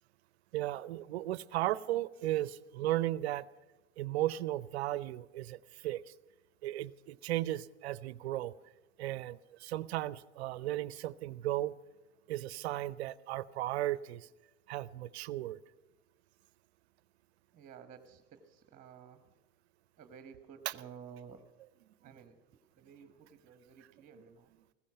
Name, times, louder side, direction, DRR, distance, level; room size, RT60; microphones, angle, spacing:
voice 1, 0.5-3.5 4.0-6.0 6.6-8.5 9.0-11.7 12.3-14.3 14.7-15.6 20.7-20.8, right 14 dB, 65° right, 19 dB, 0.6 m, -35 dB
voice 2, 17.5-19.3 20.0-21.5 22.0-22.4 22.8-24.5, right 7 dB, 20° right, 8 dB, 1.4 m, -53 dB
16.0 x 15.0 x 5.8 m, 1.1 s
hypercardioid pair, 105°, 35 cm